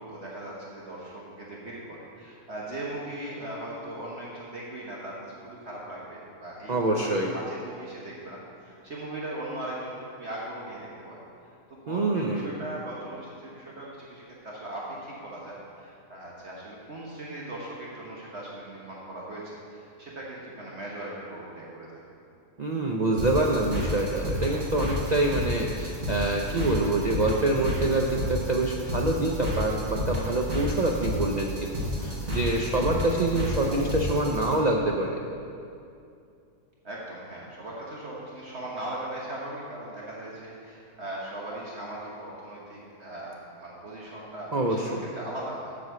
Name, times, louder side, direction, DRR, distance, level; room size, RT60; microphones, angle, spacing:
voice 1, 0.0-11.2 11.7-21.9 36.8-45.8, right 1 dB, 50° right, -5 dB, 1.3 m, -39 dB
voice 2, 6.7-7.3 11.9-12.5 22.6-31.7 32.0-35.1 44.5-44.9, right 2 dB, 70° right, -1 dB, 0.4 m, -26 dB
sound 1, 23.2-34.5, left 1 dB, 25° right, 1.7 m, -31 dB
7.7 x 6.2 x 6.7 m, 2.5 s
omnidirectional pair, 1.6 m